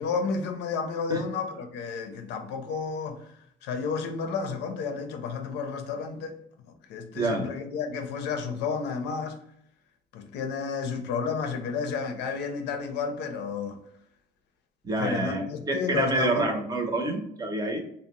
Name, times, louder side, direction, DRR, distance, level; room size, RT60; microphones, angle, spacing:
voice 1, 0.0-3.3 3.6-6.3 6.9-9.4 10.1-13.8 15.0-16.5, left 5 dB, 85° left, 0.5 m, -31 dB
voice 2, 7.2-7.5 14.8-17.8, right 2 dB, 20° right, 0.6 m, -27 dB
2.6 x 2.0 x 3.0 m
cardioid pair, 110°, 17 cm